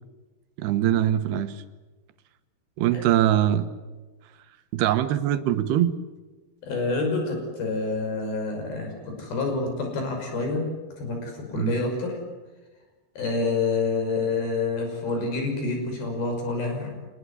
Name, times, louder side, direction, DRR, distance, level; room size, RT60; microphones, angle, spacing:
voice 1, 0.6-1.6 2.8-3.7 4.7-6.0 11.6-11.8, right 11 dB, 80° right, 11 dB, 3.2 m, -22 dB
voice 2, 6.6-10.7 11.0-12.2 13.2-16.9, left 3 dB, 60° left, 3 dB, 7.6 m, -27 dB
25.5 x 20.0 x 9.8 m, 1.2 s
omnidirectional pair, 4.8 m